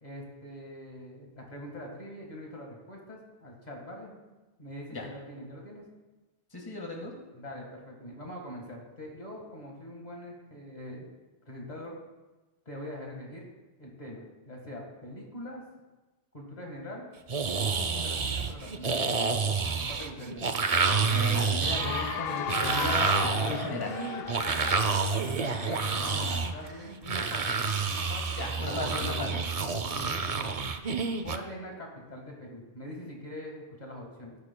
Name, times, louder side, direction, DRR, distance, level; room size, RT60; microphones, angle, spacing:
voice 1, 0.0-4.1 4.6-5.8 7.3-11.1 11.5-12.0 12.7-13.5 13.8-15.6 16.3-17.1 17.6-19.4 19.9-20.5 25.2-27.5 27.9-29.2 29.9-30.6 31.2-34.4, equal, 40° left, -1 dB, 1.8 m, -43 dB
voice 2, 6.5-7.1 21.1-24.0 28.4-29.4, left 1 dB, 20° left, 0 dB, 1.7 m, -36 dB
sound 1, 17.3-31.4, right 4 dB, 40° right, 0.6 m, -29 dB
Cheering / Applause, 21.6-26.8, left 7 dB, 70° left, 0.8 m, -36 dB
15.0 x 13.5 x 2.2 m, 1.2 s
omnidirectional pair, 1.1 m